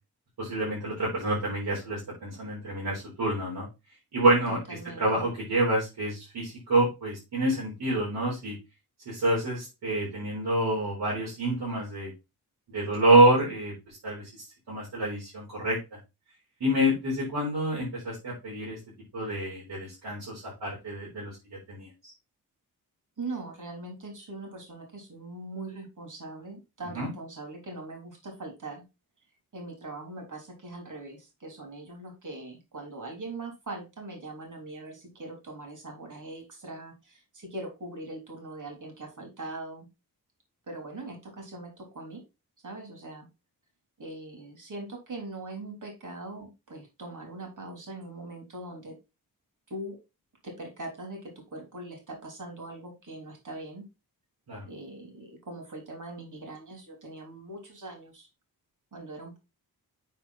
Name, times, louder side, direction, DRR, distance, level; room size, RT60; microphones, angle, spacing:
voice 1, 0.4-3.7 4.1-8.6 9.1-12.1 12.7-16.0 16.6-18.8 19.1-21.4 21.7-22.1 26.9-27.1 54.5-54.6, right 1 dB, 80° right, -5 dB, 4.3 m, -27 dB
voice 2, 4.5-5.2 23.2-28.8 29.5-39.9 40.7-42.2 42.6-43.3 44.0-49.0 49.7-50.0 50.4-53.8 54.7-58.3 58.9-59.4, right 2 dB, 55° right, 3 dB, 3.4 m, -41 dB
7.7 x 4.7 x 4.1 m, 0.26 s
cardioid pair, 60°, 38 cm